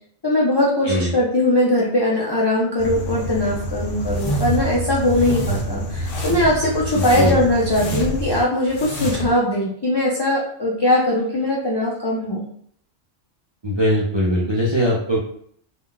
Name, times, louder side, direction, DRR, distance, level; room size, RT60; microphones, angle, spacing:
voice 1, 0.2-12.4, left 1 dB, 40° left, -5 dB, 0.3 m, -20 dB
sound 1, 2.8-8.4, equal, 85° left, 0.9 m, -28 dB
sound 2, 4.1-4.7 5.0-5.6 6.0-6.6 6.9-8.3 8.7-9.3, right 1 dB, 55° left, 0.8 m, -27 dB
voice 2, 6.9-7.3 13.6-15.2, equal, 40° right, -6 dB, 0.3 m, -20 dB
2.3 x 2.1 x 3.8 m, 0.64 s
omnidirectional pair, 1.2 m